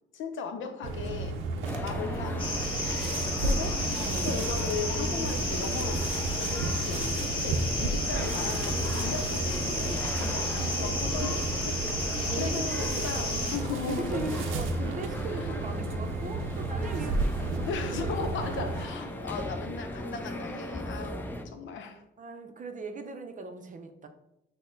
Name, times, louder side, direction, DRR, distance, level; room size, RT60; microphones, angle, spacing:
voice 1, 0.1-1.4 1.8-2.5 3.4-11.8 12.4-14.6 15.3-15.5 17.6-22.0, left 5 dB, 75° left, 7 dB, 0.7 m, -37 dB
sound 1, 0.8-18.9, right 3 dB, 90° right, 0.6 m, -33 dB
sound 2, 1.6-21.4, left 1 dB, 10° left, 0.5 m, -38 dB
sound 3, 2.4-13.6, left 1 dB, 25° left, 1.2 m, -33 dB
voice 2, 3.0-4.3 6.9-7.1 12.3-13.6 13.9-18.3 18.6-18.7 22.2-24.1, right 3 dB, 40° right, 6 dB, 0.6 m, -39 dB
6.3 x 2.1 x 3.8 m, 0.87 s
cardioid pair, 90°, 20 cm